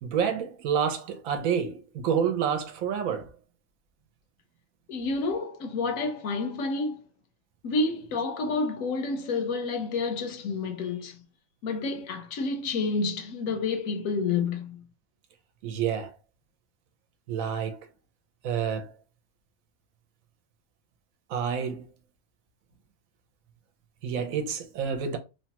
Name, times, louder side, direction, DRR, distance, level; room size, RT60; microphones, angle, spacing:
voice 1, 0.0-3.3 15.6-16.1 17.3-17.8 18.4-18.9 21.3-21.8 24.0-25.2, right 7 dB, 85° right, 1.0 m, -28 dB
voice 2, 4.9-7.0 7.6-11.3 11.6-14.9, left 3 dB, 75° left, 1.0 m, -29 dB
3.0 x 2.1 x 2.8 m
omnidirectional pair, 1.4 m